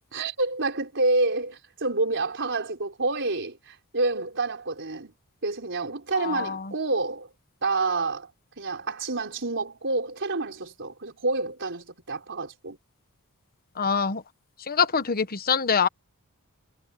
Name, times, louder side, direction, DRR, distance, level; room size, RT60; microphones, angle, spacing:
voice 1, 0.1-5.1 5.4-7.3 7.6-8.3 8.6-12.8, right 3 dB, 55° right, 4.8 m, -28 dB
voice 2, 6.1-6.6 13.8-14.2 14.7-15.9, left 6 dB, 45° left, 1.2 m, -24 dB
head